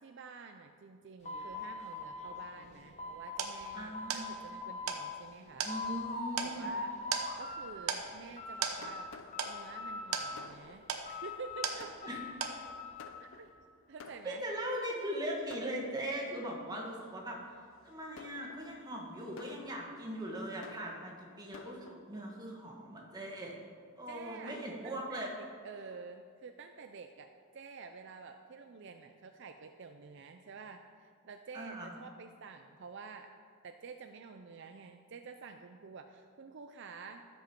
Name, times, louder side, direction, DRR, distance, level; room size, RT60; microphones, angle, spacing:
voice 1, 0.0-5.7 6.4-6.9 7.4-9.1 9.5-11.9 13.2-13.5 13.9-14.4 24.1-24.6 24.8-33.3 33.6-37.3, right 5 dB, 55° right, 6 dB, 0.4 m, -49 dB
sound 1, 1.2-3.7 3.9-5.0 5.4-6.4 6.6-7.7 8.1-9.1 9.3-10.6 11.1-13.1, left 2 dB, 30° left, 1.1 m, -42 dB
sound 2, 2.7-12.2 12.4-13.0, right 6 dB, 80° right, 0.9 m, -39 dB
voice 2, 3.7-4.3 5.6-6.7 12.1-12.2 14.2-17.4 17.8-23.5 24.0-25.3 31.5-31.9, equal, 20° right, -2 dB, 1.6 m, -40 dB
Fireworks, 8.4-14.9 15.5-16.4 17.0-17.2 17.8-21.9, left 4 dB, 60° left, 0.5 m, -54 dB
13.5 x 7.2 x 4.5 m, 2.1 s
head